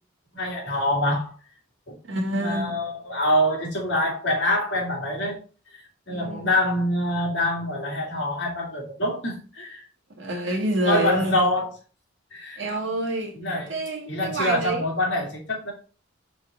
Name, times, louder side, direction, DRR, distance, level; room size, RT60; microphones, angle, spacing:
voice 1, 0.3-1.3 1.9-2.0 2.4-5.4 5.7-9.9 10.5-10.6 10.8-11.7 12.3-12.6 13.3-13.7 14.1-15.7, left 1 dB, 55° left, 2.3 m, -25 dB
voice 2, 2.0-2.8 6.1-6.5 10.2-11.4 12.6-13.4 13.7-14.8, right 1 dB, 60° right, 1.8 m, -27 dB
5.1 x 4.1 x 4.8 m
head